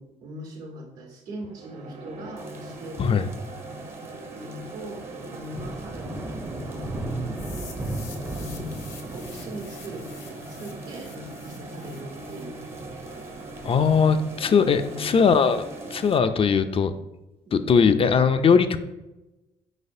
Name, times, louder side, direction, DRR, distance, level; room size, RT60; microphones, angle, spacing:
voice 1, 0.0-3.3 4.3-7.1 8.2-8.8 9.1-12.6 14.3-15.2 17.4-17.9, equal, 80° right, 0 dB, 1.3 m, -40 dB
sound 1, 1.4-16.7, right 2 dB, 45° right, 0.8 m, -41 dB
sound 2, 2.4-16.2, right 2 dB, 15° right, 0.5 m, -39 dB
sound 3, 7.3-13.3, left 6 dB, 75° left, 0.9 m, -48 dB
voice 2, 13.6-15.6 15.9-16.9 17.5-18.8, left 6 dB, 40° left, 10 dB, 0.4 m, -20 dB
4.8 x 4.1 x 2.6 m, 1.0 s
supercardioid pair, 60°, 15 cm